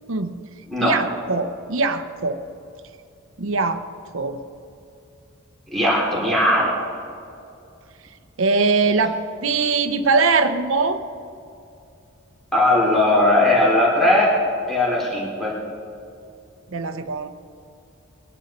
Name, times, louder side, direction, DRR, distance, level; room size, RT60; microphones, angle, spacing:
voice 1, 0.8-2.4 3.4-3.8 4.1-4.4 8.4-11.0 16.7-17.3, right 4 dB, 65° right, 9 dB, 0.8 m, -21 dB
voice 2, 5.7-6.8 12.5-14.4 14.7-15.6, left 1 dB, ahead, -6 dB, 3.3 m, -18 dB
23.0 x 10.5 x 4.3 m, 2.6 s
head